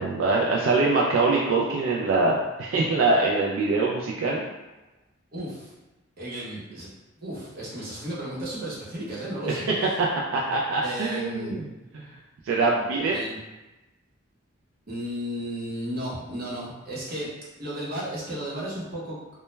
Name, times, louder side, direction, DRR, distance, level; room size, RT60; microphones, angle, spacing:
voice 1, 0.0-4.4 9.5-9.6 10.0-10.1 10.3-11.6 12.4-13.1, right 3 dB, 85° right, -3 dB, 0.3 m, -23 dB
voice 2, 5.3-5.7 6.2-6.9 7.2-9.6 10.8-11.5 13.1-13.4 14.9-17.3 17.6-19.4, equal, 50° right, -7 dB, 0.8 m, -34 dB
2.1 x 2.1 x 3.1 m, 1.1 s
head